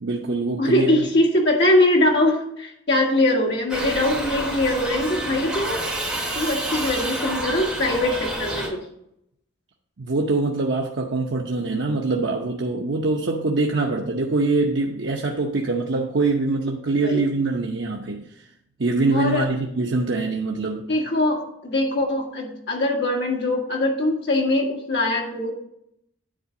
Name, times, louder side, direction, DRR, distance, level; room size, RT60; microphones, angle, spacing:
voice 1, 0.0-1.1 10.0-18.5 18.8-20.8, right 3 dB, 65° right, 0 dB, 0.7 m, -24 dB
voice 2, 0.6-5.8 6.4-8.8 17.0-17.2 19.1-19.5 20.9-25.5, left 1 dB, 60° left, 0 dB, 1.8 m, -22 dB
Shout / Livestock farm animals working animals, 3.7-8.7, right 1 dB, 5° right, 2.5 m, -29 dB
10.0 x 4.0 x 7.1 m, 0.76 s
head